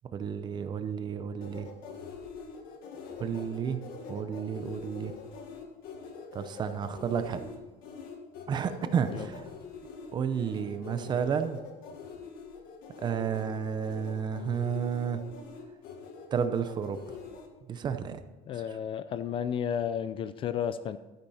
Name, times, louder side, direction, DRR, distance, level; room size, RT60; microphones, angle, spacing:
voice 1, 0.1-1.7 3.2-3.8 4.1-5.1 6.3-7.4 8.5-9.4 10.1-11.6 13.0-15.2 16.3-17.2 17.7-18.2, right 7 dB, 25° right, 10 dB, 0.7 m, -31 dB
sound 1, 1.4-17.5, left 5 dB, 60° left, 1.8 m, -44 dB
voice 2, 18.5-21.0, left 8 dB, 30° left, 13 dB, 0.4 m, -32 dB
12.0 x 10.0 x 4.2 m, 1.2 s
cardioid pair, 175°, 17 cm